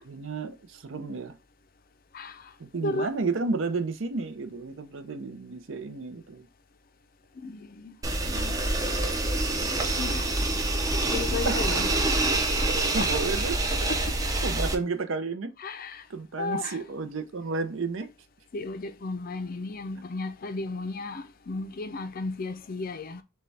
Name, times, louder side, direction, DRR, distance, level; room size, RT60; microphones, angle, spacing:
voice 1, 0.0-1.4 2.6-6.5 11.4-11.8 12.9-13.6 14.4-15.5 16.1-18.1, right 4 dB, 65° right, 0.6 m, -32 dB
voice 2, 2.1-2.5 2.8-3.1 7.4-8.0 8.3-8.6 10.0-10.3 11.1-11.9 13.0-13.1 13.9-14.2 15.6-16.1 16.4-16.8 18.5-23.2, left 3 dB, 45° left, 0.5 m, -34 dB
sound 1, 8.0-14.7, right 2 dB, 15° right, 0.5 m, -26 dB
6.6 x 2.3 x 3.3 m
head